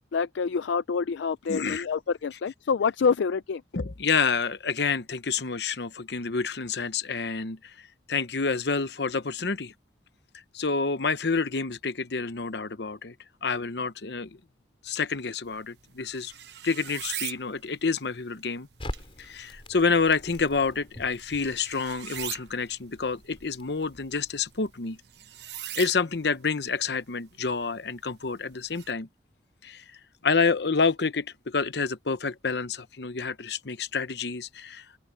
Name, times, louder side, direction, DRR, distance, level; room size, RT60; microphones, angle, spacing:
voice 1, 0.0-3.6, left 5 dB, 80° left, 0.4 m, -27 dB
voice 2, 1.5-1.9 3.7-7.7 8.1-9.7 10.5-13.1 13.4-14.3 14.8-16.3 16.6-18.7 19.2-25.0 25.8-29.1 29.6-29.8 30.2-34.8, left 4 dB, 65° left, 0.9 m, -28 dB
sound 1, 15.4-28.9, right 12 dB, 65° right, 1.0 m, -43 dB
Crackle, 18.8-24.9, left 1 dB, 30° left, 4.9 m, -44 dB
head